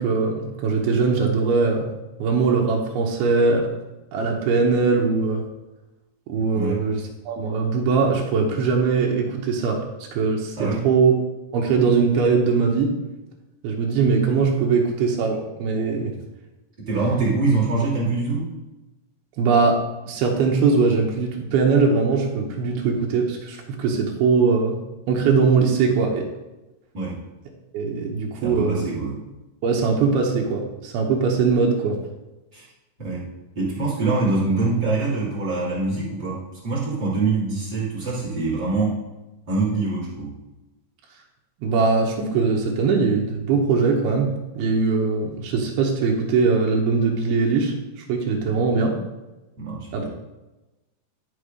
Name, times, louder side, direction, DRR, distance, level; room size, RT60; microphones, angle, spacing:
voice 1, 0.0-1.9 2.2-3.7 4.1-5.4 6.3-9.8 10.1-11.1 11.5-13.0 13.6-16.1 19.4-19.8 20.1-24.8 25.1-26.3 27.7-28.9 29.6-32.0 41.6-49.0 49.9-50.1, right 4 dB, 90° right, 0 dB, 2.9 m, -21 dB
voice 2, 16.9-18.5 26.9-27.2 28.4-29.2 32.5-32.7 33.0-33.3 33.5-39.0 39.5-40.3 49.6-50.1, right 3 dB, 30° right, -7 dB, 2.8 m, -24 dB
11.5 x 4.4 x 5.0 m, 1.1 s
omnidirectional pair, 4.4 m